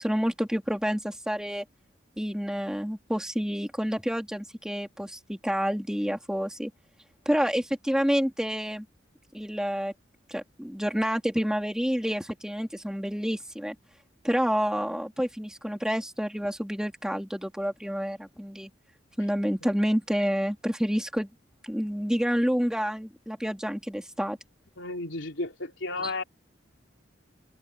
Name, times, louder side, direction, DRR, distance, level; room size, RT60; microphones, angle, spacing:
voice 1, 0.0-1.6 2.2-6.7 7.2-8.8 9.3-9.9 10.3-13.7 14.2-18.7 19.2-21.3 21.6-24.4 26.0-26.1, equal, 5° right, 3.3 m, -28 dB
voice 2, 24.8-26.2, left 2 dB, 75° left, 3.4 m, -33 dB
head